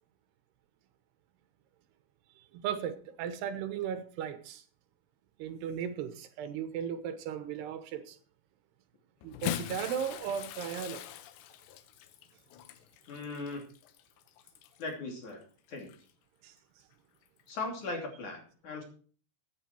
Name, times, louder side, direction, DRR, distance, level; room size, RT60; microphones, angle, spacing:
voice 1, 2.5-4.6 5.4-8.2 9.2-11.0 16.4-16.5, right 8 dB, 75° right, 10 dB, 3.0 m, -36 dB
Bathtub (filling or washing) / Splash splatter, 9.2-14.9 15.8-16.0 17.4-17.5, left 12 dB, 80° left, 3.2 m, -42 dB
voice 2, 13.1-13.7 14.8-15.4 15.7-15.9 17.5-18.8, left 3 dB, 45° left, 2 dB, 3.8 m, -38 dB
15.5 x 9.6 x 4.5 m, 0.42 s
omnidirectional pair, 5.1 m